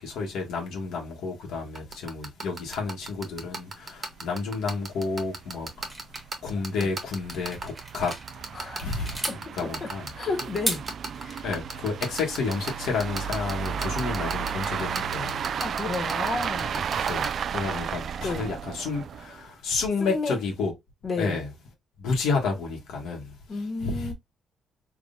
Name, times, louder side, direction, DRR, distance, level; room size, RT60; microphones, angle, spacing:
voice 1, 0.0-5.9 6.4-8.1 8.4-9.2 9.5-10.1 11.4-15.4 15.7-15.9 17.0-20.7 21.2-21.5 22.0-23.3 23.8-24.1, left 4 dB, 85° left, 1.3 m, -30 dB
sound 1, 1.8-17.3, right 3 dB, 40° right, 1.2 m, -33 dB
sound 2, 3.0-3.1 3.4-3.5 3.9-4.0 4.3-4.4 5.1-19.4, right 7 dB, 60° right, 0.3 m, -33 dB
sound 3, 5.9-8.3 8.7-9.4 10.4-11.3, right 1 dB, 15° right, 1.3 m, -34 dB
voice 2, 8.5-9.9 10.1-10.8 11.2-11.4 15.6-16.8 18.2-18.5 20.0-20.4 21.0-21.4 23.5-24.1, left 3 dB, 45° left, 1.3 m, -32 dB
3.5 x 3.1 x 2.6 m
cardioid pair, 90°, 0 cm